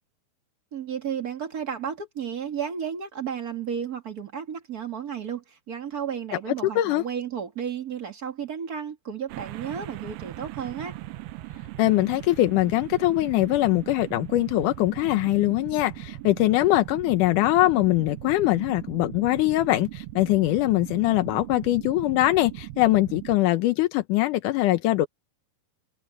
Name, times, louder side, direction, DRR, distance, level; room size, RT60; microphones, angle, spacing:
voice 1, 0.7-11.0, right 8 dB, 35° right, 1.5 m, -33 dB
sound 1, 9.3-23.4, right 17 dB, 85° right, 2.8 m, -39 dB
voice 2, 11.8-25.1, left 16 dB, 75° left, 2.0 m, -22 dB
omnidirectional pair, 4.4 m